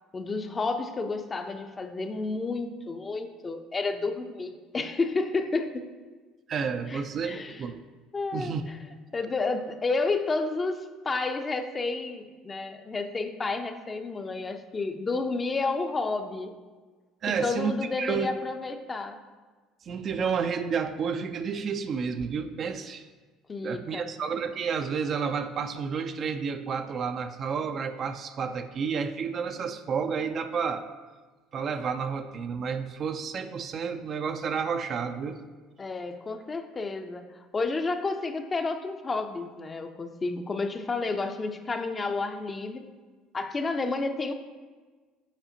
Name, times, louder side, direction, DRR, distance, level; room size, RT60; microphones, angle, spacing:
voice 1, 0.1-5.9 6.9-7.6 8.1-8.5 9.1-16.5 17.3-19.2 23.5-24.1 35.8-42.9 43.3-44.3, left 3 dB, 30° left, 7 dB, 0.5 m, -31 dB
voice 2, 6.5-7.8 8.3-8.7 17.2-17.7 18.0-18.3 19.8-23.1 23.6-30.8 31.5-35.4, right 6 dB, 45° right, 8 dB, 0.4 m, -30 dB
7.2 x 4.9 x 2.7 m, 1.4 s
hypercardioid pair, 65°, 0 cm